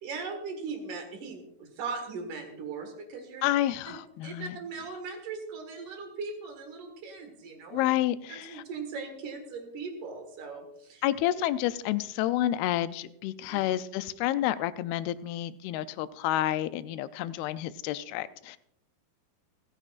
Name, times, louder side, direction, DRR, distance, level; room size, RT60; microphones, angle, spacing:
voice 1, 0.0-3.5 3.9-4.0 4.2-7.8 8.3-11.0 13.5-13.6, right 4 dB, 60° right, 5 dB, 3.1 m, -39 dB
voice 2, 3.4-4.6 7.7-8.6 11.0-18.6, left 13 dB, 85° left, 14 dB, 2.5 m, -29 dB
28.0 x 9.9 x 2.5 m, 0.75 s
omnidirectional pair, 4.3 m